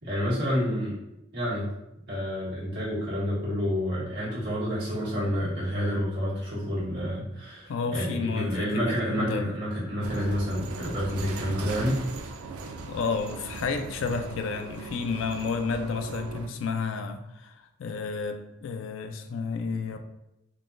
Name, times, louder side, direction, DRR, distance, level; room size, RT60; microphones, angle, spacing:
voice 1, 0.0-1.0 1.3-1.7 2.1-12.0, equal, 50° right, -8 dB, 1.4 m, -29 dB
voice 2, 7.7-9.5 12.9-17.5 17.8-20.0, left 4 dB, 65° left, 7 dB, 0.3 m, -31 dB
sound 1, 10.0-16.5, right 3 dB, 85° right, 0.4 m, -38 dB
3.7 x 2.9 x 2.5 m, 0.90 s
head